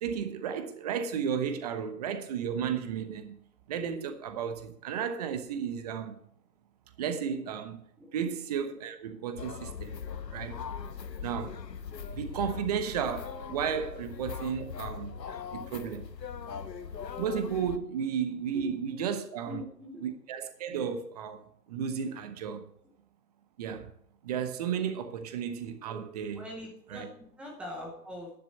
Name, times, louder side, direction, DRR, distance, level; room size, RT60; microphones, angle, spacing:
voice 1, 0.0-3.4 3.7-6.2 7.0-7.8 8.1-10.0 10.3-10.6 11.2-11.6 12.1-15.2 15.5-16.0 17.2-19.6 20.0-22.6 23.6-23.9 24.2-26.4 26.9-27.1, right 7 dB, 25° right, 1.0 m, -33 dB
voice 2, 8.0-8.3 13.9-14.0 15.4-15.6 18.5-18.6 19.4-20.0 25.8-26.0 26.3-28.3, left 1 dB, ahead, 0.8 m, -43 dB
sound 1, 9.4-17.8, left 6 dB, 75° left, 1.2 m, -40 dB
11.0 x 10.0 x 4.2 m
figure-of-eight pair, 145°, 50 cm